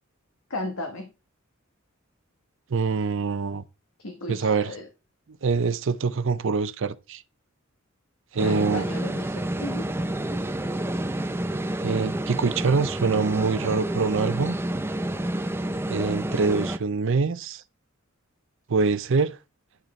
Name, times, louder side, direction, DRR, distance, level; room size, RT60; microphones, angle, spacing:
voice 1, 0.5-1.1 4.0-4.9 8.4-9.9 10.3-10.4, left 2 dB, 80° left, 1.2 m, -35 dB
voice 2, 2.7-3.6 4.3-4.7 5.4-7.2 8.3-8.8 11.8-14.6 15.9-17.6 18.7-19.4, right 4 dB, 65° right, 0.5 m, -24 dB
sound 1, 8.4-16.8, right 1 dB, 10° right, 0.4 m, -29 dB
10.0 x 6.5 x 3.2 m
head